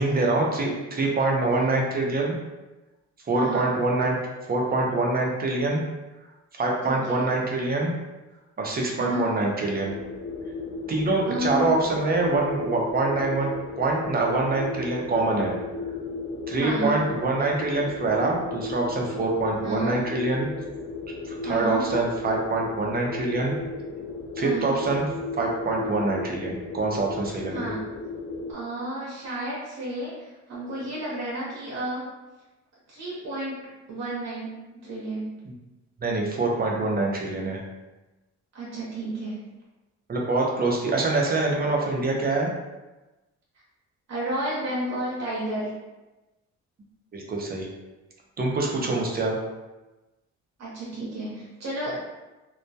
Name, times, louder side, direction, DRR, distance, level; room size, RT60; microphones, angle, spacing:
voice 1, 0.0-2.3 3.3-4.2 4.5-5.8 6.5-7.9 8.6-9.9 10.9-13.5 13.8-15.5 16.5-20.5 21.2-23.5 24.4-25.0 25.3-27.6 35.4-35.5 36.0-37.6 40.1-42.5 47.1-47.7 48.4-49.4, right 2 dB, 30° right, -1 dB, 0.6 m, -25 dB
voice 2, 3.3-3.7 6.9-7.3 9.0-9.2 11.3-11.7 16.6-17.0 19.6-19.9 21.4-21.8 24.4-24.7 27.5-27.8 28.5-32.1 32.9-33.6 33.9-34.5 34.8-35.3 38.5-39.4 44.1-45.7 48.8-49.0 50.6-51.9, right 1 dB, 60° right, -6 dB, 0.8 m, -31 dB
sound 1, 9.8-28.5, left 3 dB, 80° left, 0.5 m, -35 dB
2.2 x 2.1 x 2.7 m, 1.1 s
cardioid pair, 90°, 30 cm